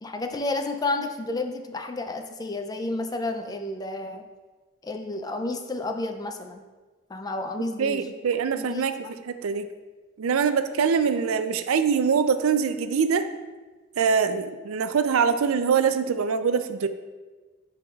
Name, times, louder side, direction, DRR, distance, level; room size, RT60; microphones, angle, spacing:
voice 1, 0.0-4.2 4.8-6.6 7.1-8.1 8.6-9.2, left 2 dB, 20° left, 5 dB, 0.3 m, -31 dB
voice 2, 7.8-9.7 10.2-13.3 14.0-16.9, right 6 dB, 80° right, 10 dB, 0.4 m, -24 dB
10.0 x 4.7 x 2.3 m, 1.3 s
head